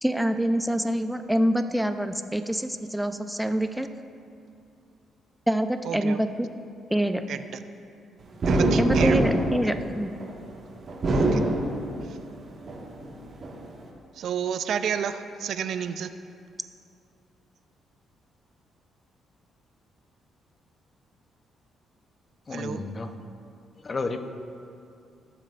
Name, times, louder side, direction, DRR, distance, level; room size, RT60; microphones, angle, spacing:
voice 1, 0.0-3.9 5.5-6.5 6.9-7.2 8.8-10.1, equal, 5° right, 8 dB, 0.5 m, -26 dB
voice 2, 5.9-6.2 7.3-7.4 8.5-9.2 11.1-11.4 14.2-16.1 22.5-22.8, right 8 dB, 65° right, 10 dB, 0.4 m, -30 dB
sound 1, 8.4-10.3 10.9-12.2 12.7-13.6, right 2 dB, 50° right, 1.6 m, -24 dB
voice 3, 22.5-23.2 23.8-24.2, left 3 dB, 35° left, 7 dB, 0.8 m, -31 dB
17.5 x 7.4 x 2.5 m, 2.5 s
cardioid pair, 90°, 0 cm